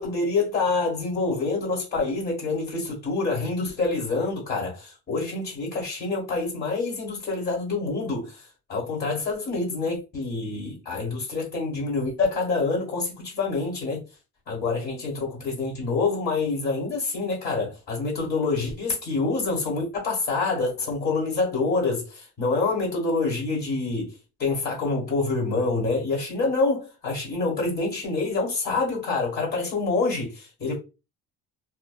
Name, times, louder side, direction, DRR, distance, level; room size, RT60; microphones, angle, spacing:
voice 1, 0.0-8.3 8.7-14.0 14.5-24.1 24.4-30.7, left 3 dB, 30° left, 1.3 m, -26 dB
2.7 x 2.2 x 2.3 m
cardioid pair, 105°, 30 cm